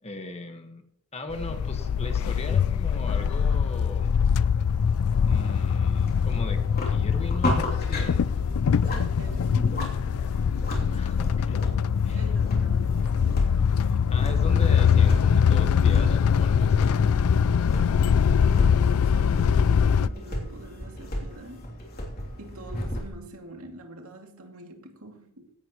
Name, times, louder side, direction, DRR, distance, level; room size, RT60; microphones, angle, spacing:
voice 1, 0.0-0.8 1.1-4.1 5.3-8.3 10.9-11.6 12.0-12.3 14.1-17.0, left 2 dB, 30° left, 1.5 m, -38 dB
sound 1, 1.3-20.1, left 7 dB, 80° left, 0.4 m, -23 dB
sound 2, 5.3-23.1, left 1 dB, 45° left, 3.0 m, -35 dB
voice 2, 8.8-10.3 12.1-13.9 14.9-15.0 16.9-17.4 18.3-21.8 22.4-25.5, right 1 dB, 80° right, 2.5 m, -45 dB
16.0 x 11.5 x 3.1 m
head